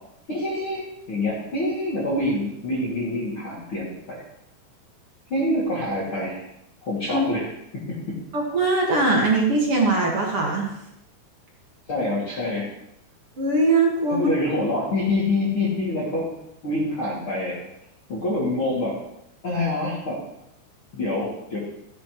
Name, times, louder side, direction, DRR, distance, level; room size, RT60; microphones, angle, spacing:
voice 1, 0.3-4.2 5.3-6.4 6.8-7.5 7.7-8.0 11.9-12.7 14.1-16.3 16.6-17.6 18.1-19.0 19.4-20.2 20.9-21.6, left 1 dB, 35° left, -6 dB, 3.0 m, -26 dB
voice 2, 8.3-10.7 13.4-14.3, right 2 dB, 45° right, -2 dB, 2.2 m, -21 dB
15.5 x 11.0 x 3.2 m, 0.80 s
omnidirectional pair, 4.8 m